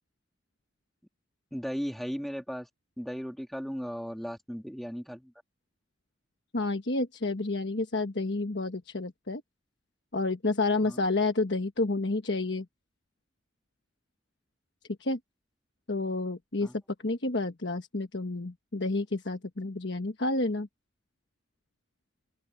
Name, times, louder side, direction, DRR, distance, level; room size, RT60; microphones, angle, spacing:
voice 1, 1.5-2.7 3.0-5.3 10.8-11.0 16.6-16.8, equal, ahead, 2.5 m, -36 dB
voice 2, 6.5-9.4 10.1-12.6 15.0-15.2 15.9-16.7 17.0-20.7, left 2 dB, 60° left, 1.3 m, -30 dB
open air
head